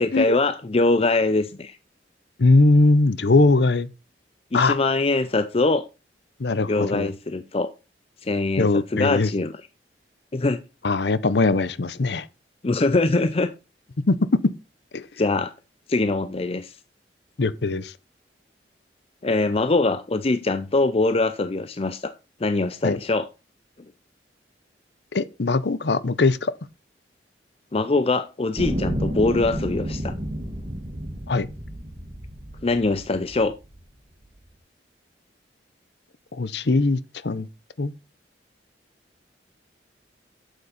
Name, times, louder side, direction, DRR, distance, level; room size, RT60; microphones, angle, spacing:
voice 1, 0.0-1.8 4.5-5.8 6.7-7.7 8.2-9.5 10.3-10.6 12.6-13.5 15.2-15.5 15.9-16.8 19.2-22.1 22.4-23.2 27.7-30.1 32.6-33.5, left 2 dB, 35° left, 0.6 m, -23 dB
voice 2, 2.4-3.9 4.5-4.8 6.4-7.1 8.6-9.3 10.8-12.3 14.1-14.2 14.9-15.1 17.4-17.9 22.8-23.0 25.1-26.5 31.3-31.5 36.3-37.5 37.8-37.9, left 3 dB, 70° left, 0.7 m, -20 dB
sound 1, 28.6-33.8 34.5-34.6, equal, 40° right, 2.1 m, -31 dB
8.1 x 8.0 x 4.1 m
head